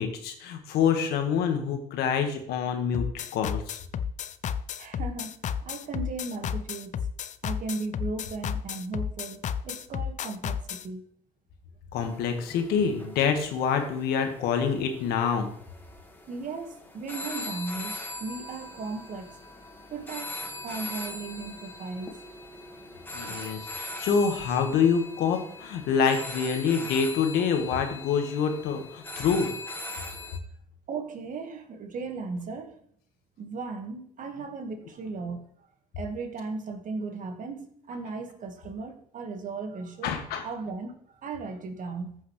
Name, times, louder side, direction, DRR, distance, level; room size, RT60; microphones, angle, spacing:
voice 1, 0.0-3.8 11.9-15.5 23.1-29.5 40.0-40.4, left 6 dB, 75° left, 5 dB, 1.6 m, -26 dB
sound 1, 2.9-10.9, left 8 dB, 50° left, 0.6 m, -32 dB
voice 2, 4.8-6.9 7.4-11.1 16.3-19.3 19.9-22.2 23.2-23.5 30.9-32.8 33.4-35.5 36.0-42.2, right 4 dB, 55° right, 6 dB, 1.7 m, -36 dB
sound 2, 11.9-30.4, left 2 dB, 10° left, 1.8 m, -41 dB
14.5 x 5.7 x 3.3 m, 0.63 s
supercardioid pair, 75°, 16 cm